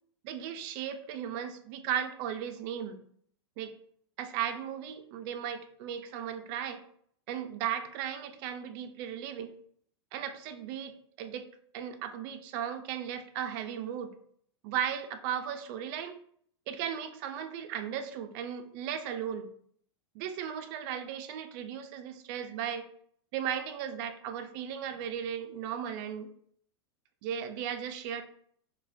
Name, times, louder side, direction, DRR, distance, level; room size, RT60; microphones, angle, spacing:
voice 1, 0.2-3.0 3.6-3.7 4.2-6.8 7.3-9.5 10.1-11.5 11.7-14.1 14.6-16.2 16.7-19.5 20.1-22.9 23.3-26.3 27.2-28.2, right 9 dB, 45° right, 7 dB, 0.4 m, -36 dB
4.0 x 2.2 x 2.5 m, 0.62 s
supercardioid pair, 135°, 15 cm